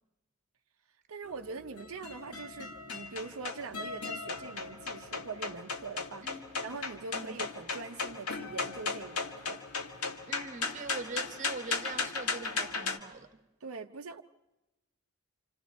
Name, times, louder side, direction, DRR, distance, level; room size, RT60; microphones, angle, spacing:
voice 1, 1.1-9.6 13.6-14.2, right 4 dB, 70° right, 0.6 m, -43 dB
sound 1, 1.3-13.0, left 4 dB, 80° left, 1.7 m, -37 dB
voice 2, 6.2-6.6 7.1-7.4 10.3-13.4, right 3 dB, 35° right, 1.0 m, -42 dB
28.5 x 27.0 x 4.1 m
head